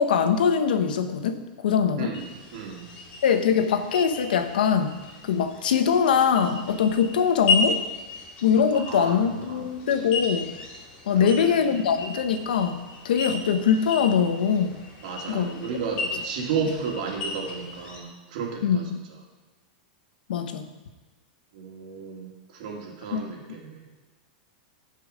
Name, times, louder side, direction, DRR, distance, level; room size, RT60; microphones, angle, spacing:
voice 1, 0.0-2.2 3.2-5.0 5.2-7.8 8.4-10.6 11.1-14.8 15.3-15.6 16.1-16.2 18.6-19.0 20.3-20.7 23.1-23.2, left 7 dB, 90° left, 8 dB, 1.1 m, -23 dB
voice 2, 2.0-2.9 8.7-9.2 9.5-9.7 11.1-11.8 15.0-18.8 21.5-23.9, right 5 dB, 60° right, 0 dB, 2.4 m, -33 dB
sound 1, 2.1-18.0, left 3 dB, 35° left, 2.5 m, -34 dB
15.0 x 5.6 x 5.1 m, 1.2 s
supercardioid pair, 160°, 5 cm